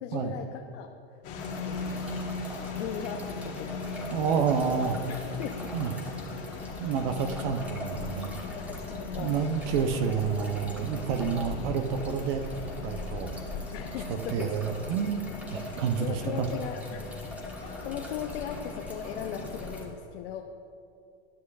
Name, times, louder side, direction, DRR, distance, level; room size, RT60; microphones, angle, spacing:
voice 1, 0.0-1.0 1.5-2.2 2.7-3.9 5.1-5.7 8.5-9.4 13.7-14.8 15.7-17.0 17.5-20.4, left 8 dB, 75° left, 4 dB, 0.6 m, -38 dB
sound 1, 1.2-19.8, left 3 dB, 45° left, 1.3 m, -38 dB
sound 2, 1.4-19.9, left 1 dB, 5° right, 1.2 m, -45 dB
voice 2, 4.1-5.0 5.7-5.9 6.8-8.4 9.2-12.5 12.8-13.4 14.1-15.2 15.5-16.5, right 6 dB, 60° right, 6 dB, 0.7 m, -29 dB
12.5 x 6.3 x 2.4 m, 2.4 s
hypercardioid pair, 110°, 32 cm